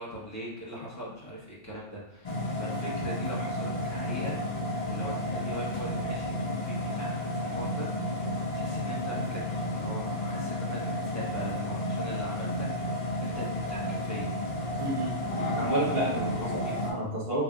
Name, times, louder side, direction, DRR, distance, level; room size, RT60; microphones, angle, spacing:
voice 1, 0.0-4.4 4.9-12.7 13.2-14.3 16.1-16.7, equal, 15° left, -6 dB, 0.9 m, -41 dB
sound 1, 2.2-16.9, left 1 dB, 50° left, 0.5 m, -32 dB
voice 2, 14.8-15.2 15.5-16.3 16.5-17.4, right 1 dB, 55° right, -6 dB, 1.3 m, -30 dB
3.4 x 2.6 x 3.4 m, 0.83 s
omnidirectional pair, 1.2 m